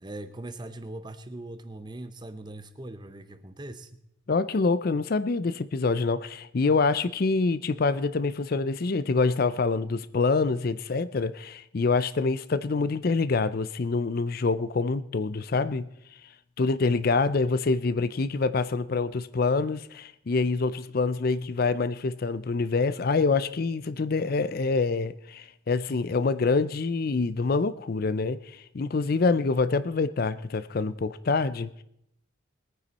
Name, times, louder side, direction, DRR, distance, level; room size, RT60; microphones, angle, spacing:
voice 1, 0.0-3.9, right 1 dB, 20° right, 11 dB, 0.7 m, -40 dB
voice 2, 4.3-15.9 16.6-31.8, left 4 dB, 45° left, 14 dB, 0.5 m, -26 dB
20.5 x 9.5 x 4.1 m, 0.77 s
head